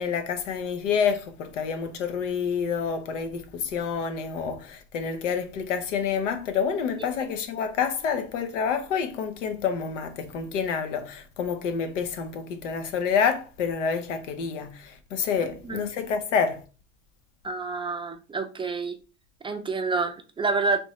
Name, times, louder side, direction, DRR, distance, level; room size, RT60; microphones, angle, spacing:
voice 1, 0.0-16.6, left 6 dB, 90° left, 0.8 m, -28 dB
voice 2, 17.4-19.0 19.4-20.8, right 3 dB, 15° right, 0.4 m, -28 dB
3.5 x 3.1 x 3.1 m
supercardioid pair, 105°, 36 cm